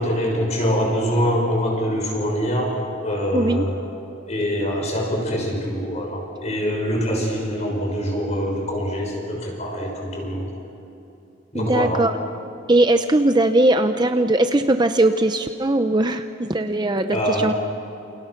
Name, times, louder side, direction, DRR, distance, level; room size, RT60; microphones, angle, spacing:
voice 1, 0.0-3.8 4.3-10.5 11.5-12.0 17.1-17.5, equal, 35° left, 0 dB, 6.4 m, -24 dB
voice 2, 3.3-3.6 11.5-12.1 12.7-17.5, right 1 dB, 25° right, 8 dB, 0.8 m, -19 dB
29.5 x 28.5 x 6.0 m, 2.8 s
head